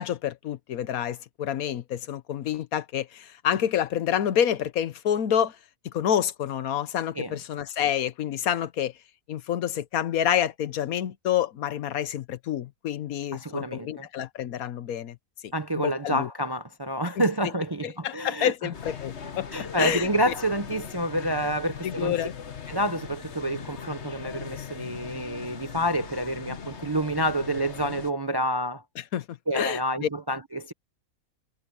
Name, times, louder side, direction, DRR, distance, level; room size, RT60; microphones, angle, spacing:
voice 1, 0.0-5.6 5.8-8.9 9.3-15.2 15.4-16.3 17.2-17.3 18.0-19.5 19.8-20.3 21.8-22.3 29.1-30.1, left 10 dB, 80° left, 1.3 m, -28 dB
voice 2, 13.3-14.1 15.5-18.5 19.5-22.1 22.7-28.8 29.5-30.7, right 1 dB, 30° right, 0.5 m, -28 dB
sound 1, 18.7-28.1, left 7 dB, 50° left, 1.5 m, -40 dB
omnidirectional pair, 1.5 m